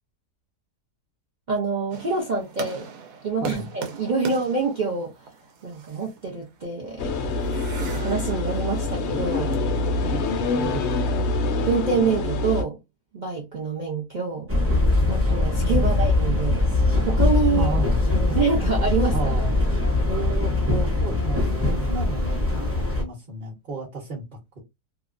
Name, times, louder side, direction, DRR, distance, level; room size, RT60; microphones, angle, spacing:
voice 1, 1.5-2.9 3.2-5.1 5.6-7.1 7.4-7.5 7.8-9.6 10.0-10.9 11.6-12.8 13.1-14.5 15.1-16.6 17.0-17.7 18.4-19.3, right 4 dB, 65° right, 0.4 m, -26 dB
sound 1, 1.9-11.0, right 5 dB, 80° right, 1.2 m, -41 dB
voice 2, 3.4-3.7 10.7-10.8 15.6-16.1 17.4-18.4 19.1-19.5 20.1-24.2, right 2 dB, 35° right, 1.0 m, -33 dB
sound 2, 7.0-12.6, left 3 dB, 80° left, 0.6 m, -25 dB
sound 3, 14.5-23.0, left 2 dB, 15° right, 0.5 m, -22 dB
2.8 x 2.2 x 2.4 m
omnidirectional pair, 1.7 m